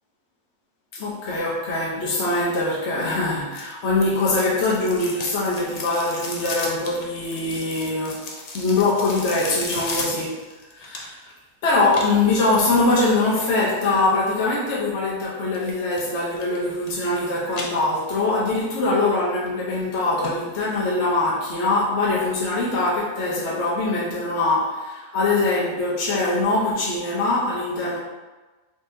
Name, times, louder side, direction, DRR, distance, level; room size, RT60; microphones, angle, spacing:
voice 1, 0.9-8.2 8.5-10.4 10.7-11.3 11.6-28.0, left 2 dB, 55° left, -6 dB, 1.0 m, -23 dB
sound 1, 3.5-11.3 11.9-13.6 15.5-16.0 16.4-17.2 17.5-18.3 18.7-18.8 19.5-19.6 19.9-20.0 20.2-20.3 20.7-20.8, left 3 dB, 90° left, 0.3 m, -35 dB
3.8 x 3.3 x 2.6 m, 1.2 s
omnidirectional pair, 1.4 m